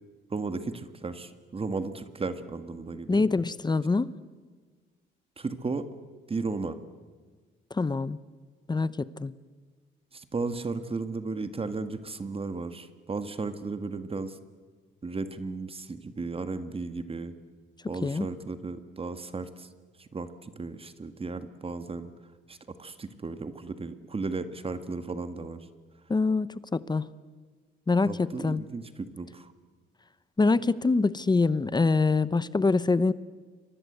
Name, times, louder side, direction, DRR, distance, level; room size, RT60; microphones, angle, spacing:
voice 1, 0.3-3.3 5.4-5.9 6.3-6.8 10.1-14.4 15.0-17.3 17.9-19.7 20.0-22.1 22.5-25.7 28.0-29.5, right 3 dB, 30° right, 1.8 m, -35 dB
voice 2, 3.1-4.1 7.7-8.2 8.7-9.3 18.0-18.3 26.1-26.5 26.7-27.1 27.9-28.6 30.4-33.1, left 3 dB, 20° left, 0.9 m, -24 dB
29.5 x 23.5 x 8.1 m
cardioid pair, 90°, 20 cm